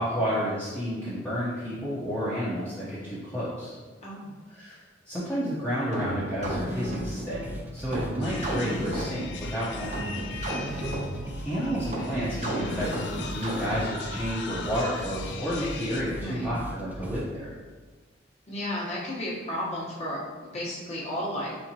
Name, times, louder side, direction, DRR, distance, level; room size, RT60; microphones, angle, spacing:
voice 1, 0.0-3.7 4.5-4.8 5.1-10.1 11.4-17.5, equal, 5° left, -12 dB, 0.8 m, -31 dB
voice 2, 4.0-4.3 8.2-8.4 16.1-16.5 18.5-21.6, left 1 dB, 35° left, -7 dB, 1.2 m, -34 dB
sound 1, 5.9-14.1, right 1 dB, 35° right, 0.7 m, -33 dB
sound 2, 6.4-17.3, right 1 dB, 10° right, 0.3 m, -40 dB
sound 3, 8.2-16.0, left 5 dB, 60° left, 0.4 m, -40 dB
4.3 x 3.5 x 2.9 m, 1.4 s
head